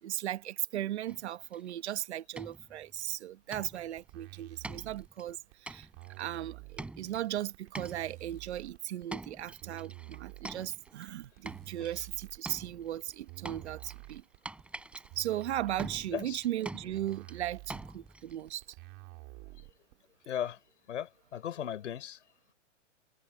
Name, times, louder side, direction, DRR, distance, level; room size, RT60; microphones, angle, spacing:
voice 1, 0.0-5.9 6.2-14.2 15.2-18.8, right 12 dB, 60° right, 1.5 m, -37 dB
sound 1, 1.1-1.7 2.0-2.1 2.4-3.0 3.5-4.0 4.6-5.3 5.7-6.2 6.8-7.3 7.7-8.3 9.1-11.1 11.5-12.1 12.5-18.6, right 2 dB, 5° right, 3.6 m, -45 dB
sound 2, 4.0-19.9, right 27 dB, 30° right, 4.7 m, -49 dB
voice 2, 20.3-20.6 20.9-22.2, left 10 dB, 70° left, 4.9 m, -36 dB
hypercardioid pair, 160°, 38 cm